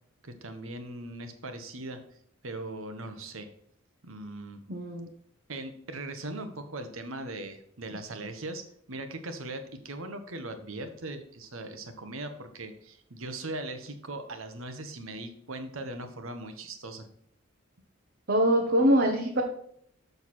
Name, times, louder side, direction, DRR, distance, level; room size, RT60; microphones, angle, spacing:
voice 1, 0.2-2.0 2.4-3.5 4.0-4.6 5.5-8.6 8.9-17.1, right 2 dB, 70° right, 7 dB, 1.3 m, -39 dB
voice 2, 4.7-5.1 18.3-19.4, equal, 50° right, 1 dB, 1.1 m, -23 dB
6.9 x 6.6 x 4.5 m, 0.67 s
head